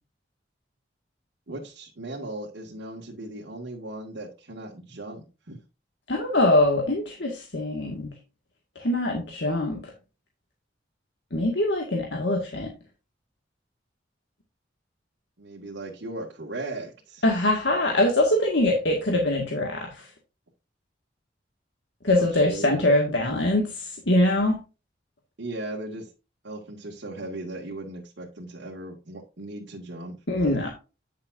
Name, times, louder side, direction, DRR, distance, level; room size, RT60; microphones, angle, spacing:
voice 1, 1.5-5.6 15.4-17.2 22.1-23.4 25.4-26.1 26.4-30.6, right 2 dB, 85° right, -3 dB, 2.1 m, -37 dB
voice 2, 6.1-8.1 8.8-9.9 11.3-12.7 17.2-20.1 22.0-24.6 30.3-30.7, left 1 dB, 75° left, 0 dB, 1.9 m, -23 dB
9.7 x 7.3 x 2.7 m, 0.30 s
head